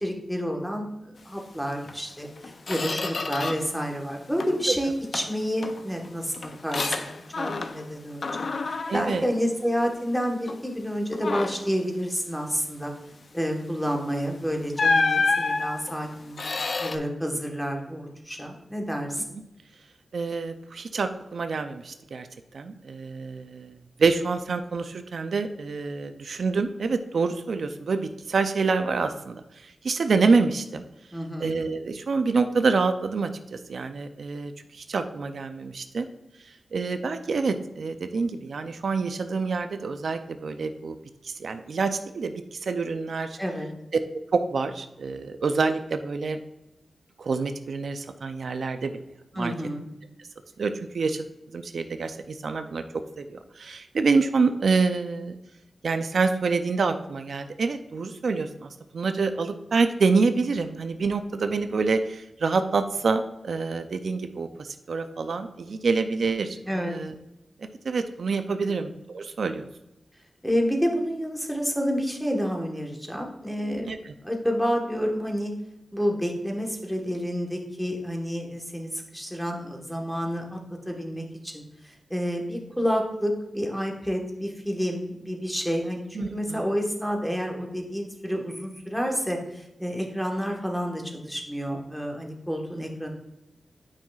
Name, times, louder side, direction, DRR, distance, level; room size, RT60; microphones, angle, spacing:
voice 1, 0.0-8.5 8.9-12.9 13.3-16.4 16.8-19.4 31.1-31.5 43.4-43.7 49.3-49.9 66.7-67.0 68.5-68.8 70.4-73.9 74.2-75.5 75.9-80.6 80.9-93.1, equal, ahead, 1 dB, 1.3 m, -29 dB
Squeak, 1.9-2.0 2.4-3.8 4.1-4.7 5.1-7.9 8.2-10.1 10.5-10.7 11.1-11.8 13.9-14.1 14.8-17.0, left 3 dB, 60° left, 0.5 m, -29 dB
voice 2, 8.9-9.2 19.2-19.3 20.1-22.3 22.5-30.8 31.4-36.1 36.4-41.0 41.2-43.4 44.3-46.4 47.2-48.9 49.3-49.5 50.6-51.3 51.5-52.8 53.2-55.4 55.8-67.1 67.6-69.7 73.9-74.1 86.1-86.6, right 4 dB, 70° right, 8 dB, 0.4 m, -27 dB
8.9 x 5.5 x 2.4 m, 0.89 s
wide cardioid pair, 90°, 0 cm